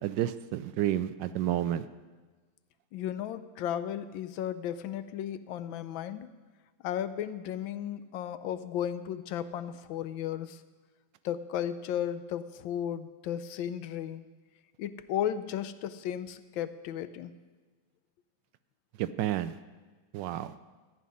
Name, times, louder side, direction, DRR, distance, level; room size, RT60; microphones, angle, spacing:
voice 1, 0.0-1.8 19.0-19.6 20.1-20.5, right 12 dB, 75° right, 13 dB, 1.2 m, -30 dB
voice 2, 2.9-6.3 6.8-10.6 11.2-14.2 14.8-17.3, left 10 dB, 80° left, 13 dB, 1.4 m, -34 dB
14.5 x 5.6 x 9.6 m, 1.4 s
omnidirectional pair, 2.1 m